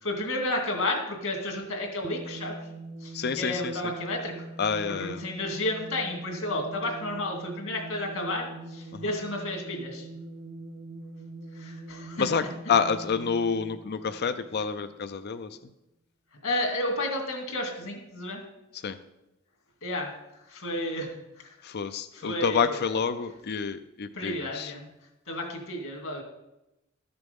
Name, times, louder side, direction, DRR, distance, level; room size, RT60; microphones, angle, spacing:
voice 1, 0.0-2.6 3.0-4.5 4.9-10.1 11.5-12.7 16.4-18.4 19.8-20.1 20.5-21.5 22.1-22.9 24.1-24.9 25.3-26.2, left 1 dB, 70° left, 2 dB, 2.4 m, -32 dB
sound 1, 2.0-14.9, right 2 dB, 50° right, 0.6 m, -43 dB
voice 2, 3.1-3.7 4.6-5.2 8.9-9.0 12.2-15.5 18.8-19.0 21.6-24.7, left 6 dB, 50° left, 10 dB, 0.5 m, -28 dB
13.0 x 6.9 x 5.3 m, 0.94 s
head